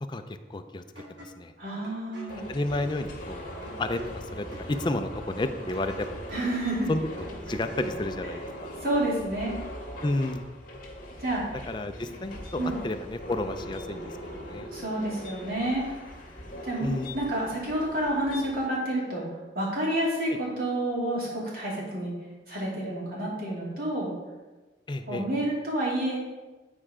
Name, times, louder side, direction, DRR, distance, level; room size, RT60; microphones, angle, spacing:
voice 1, 0.0-0.8 1.1-1.5 2.5-3.5 3.8-6.2 6.9-8.7 10.0-10.5 11.7-14.0 14.4-14.7 16.8-17.1 20.3-20.4 24.9-25.3, left 2 dB, 25° left, 8 dB, 0.4 m, -31 dB
sound 1, 1.0-8.1, right 1 dB, 80° right, 2.0 m, -46 dB
voice 2, 1.6-2.4 6.3-6.9 8.8-9.6 11.2-11.4 12.6-12.8 14.7-15.8 16.6-19.3 19.5-22.1 22.5-24.1 25.1-26.2, right 1 dB, 55° right, -5 dB, 2.7 m, -29 dB
sound 2, 2.3-18.7, equal, 50° left, 1.8 m, -40 dB
9.3 x 4.4 x 4.9 m, 1.2 s
head